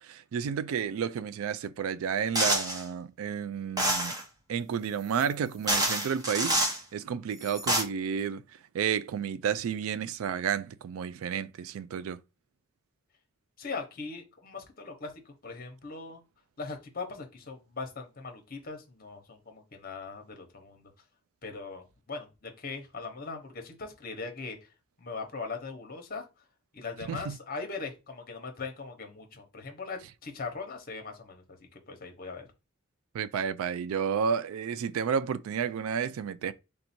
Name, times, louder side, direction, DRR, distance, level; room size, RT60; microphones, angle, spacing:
voice 1, 0.0-4.2 4.5-6.6 6.9-8.4 8.7-12.2 27.1-27.4 33.1-36.5, right 7 dB, 75° right, 0.3 m, -31 dB
sound 1, 2.4-2.8 3.8-4.2 5.2-5.3 5.7-6.8 7.4-7.8, right 1 dB, 20° right, 0.7 m, -27 dB
voice 2, 13.6-16.2 16.6-20.9 21.4-24.6 25.0-26.2 26.7-31.4 31.9-32.5, left 4 dB, 45° left, 1.0 m, -40 dB
3.5 x 2.6 x 4.3 m
head